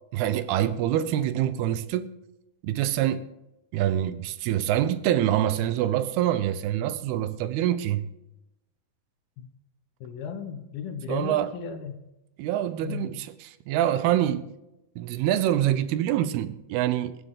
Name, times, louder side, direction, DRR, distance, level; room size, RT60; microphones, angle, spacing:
voice 1, 0.1-2.1 2.6-3.3 3.7-8.1 11.1-11.5 12.4-14.5 15.0-17.2, right 12 dB, 80° right, 2.7 m, -25 dB
voice 2, 10.0-12.0 12.8-13.1, left 6 dB, 75° left, 3.0 m, -35 dB
23.0 x 9.2 x 3.9 m
omnidirectional pair, 4.5 m